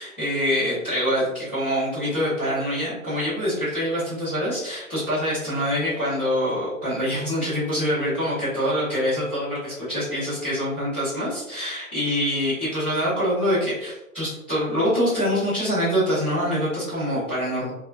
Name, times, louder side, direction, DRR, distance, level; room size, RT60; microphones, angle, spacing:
voice 1, 0.0-17.7, equal, 10° left, -18 dB, 0.5 m, -25 dB
3.8 x 2.0 x 2.5 m, 0.91 s
figure-of-eight pair, 140°, 44 cm